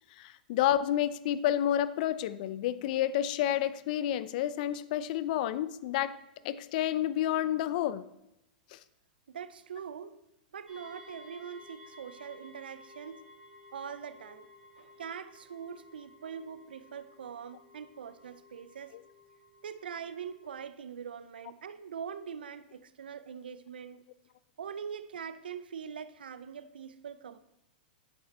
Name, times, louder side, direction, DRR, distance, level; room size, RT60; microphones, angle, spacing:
voice 1, 0.2-6.2 6.4-8.0 8.7-8.8, left 11 dB, 60° left, 15 dB, 0.6 m, -30 dB
voice 2, 9.3-10.2 10.5-13.2 13.7-14.5 14.8-18.9 19.6-24.0 24.6-27.4, right 7 dB, 85° right, 13 dB, 0.7 m, -43 dB
sound 1, 10.7-20.5, left 2 dB, 5° right, 3.8 m, -55 dB
10.5 x 7.6 x 4.3 m, 0.87 s
hypercardioid pair, 120°, 5 cm